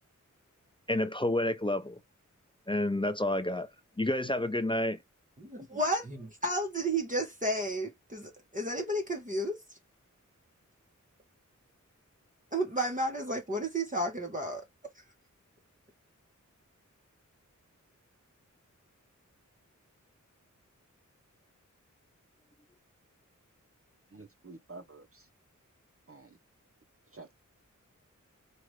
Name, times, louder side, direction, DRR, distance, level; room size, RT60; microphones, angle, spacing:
voice 1, 0.9-2.0 2.7-3.7 4.0-5.0, left 1 dB, 15° left, 0.6 m, -29 dB
voice 2, 5.4-9.8 12.5-14.6 14.9-15.0, right 1 dB, 25° right, 1.2 m, -32 dB
voice 3, 24.1-25.3 26.1-26.4 27.1-27.3, right 3 dB, 45° right, 1.0 m, -49 dB
4.8 x 2.5 x 3.2 m
wide cardioid pair, 80°, 31 cm